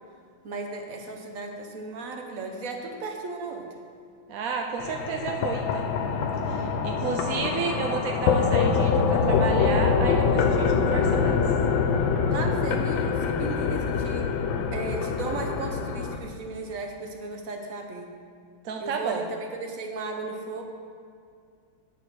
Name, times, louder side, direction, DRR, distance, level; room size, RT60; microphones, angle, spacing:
voice 1, 0.4-3.6 12.3-14.3 14.7-18.1 18.8-20.6, right 3 dB, 50° right, 3 dB, 1.2 m, -35 dB
voice 2, 4.3-6.0 6.5-11.3 18.6-19.3, right 5 dB, 70° right, 3 dB, 0.8 m, -31 dB
sound 1, 4.8-16.2, left 5 dB, 80° left, 1.5 m, -24 dB
9.4 x 5.9 x 6.2 m, 2.3 s
omnidirectional pair, 2.1 m